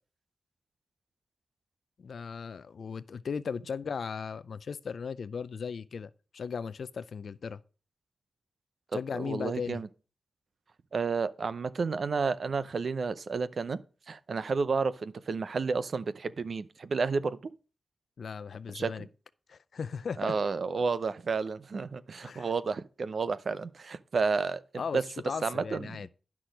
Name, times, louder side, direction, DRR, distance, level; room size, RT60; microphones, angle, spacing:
voice 1, 2.0-7.6 8.9-9.8 18.2-19.1 19.5-20.4 22.2-22.5 24.8-25.0 25.2-26.1, left 6 dB, 80° left, 0.4 m, -37 dB
voice 2, 9.1-9.9 10.9-13.8 14.1-17.5 18.7-19.1 20.2-24.6 24.9-25.0 25.4-26.0, right 4 dB, 70° right, 0.6 m, -31 dB
10.0 x 6.1 x 5.1 m
cardioid pair, 50°, 0 cm